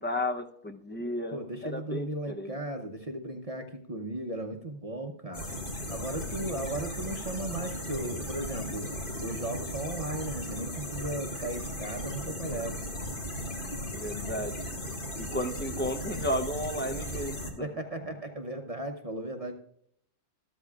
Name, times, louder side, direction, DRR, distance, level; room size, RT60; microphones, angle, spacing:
voice 1, 0.0-2.6 13.9-14.7 15.2-17.7, left 1 dB, 15° left, 6 dB, 0.5 m, -33 dB
voice 2, 1.3-5.5 5.9-8.9 9.2-12.8 17.6-19.5, right 1 dB, 30° right, 3 dB, 0.8 m, -36 dB
sound 1, 5.3-17.5, left 1 dB, 40° left, 1.9 m, -36 dB
13.5 x 13.0 x 2.4 m, 0.68 s
omnidirectional pair, 1.4 m